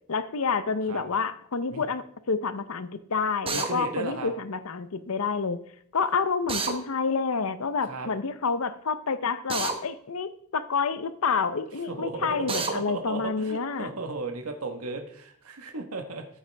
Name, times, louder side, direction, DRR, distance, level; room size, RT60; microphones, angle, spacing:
voice 1, 0.1-5.6 5.9-13.9, left 5 dB, 70° left, 13 dB, 0.7 m, -28 dB
Drill, 3.5-3.7 6.5-6.8 9.5-9.8 12.5-12.7, right 4 dB, 25° right, 1.0 m, -29 dB
voice 2, 3.5-4.3 7.8-8.1 11.9-16.3, right 3 dB, 80° right, 5 dB, 1.3 m, -35 dB
13.5 x 7.5 x 3.4 m, 0.63 s
head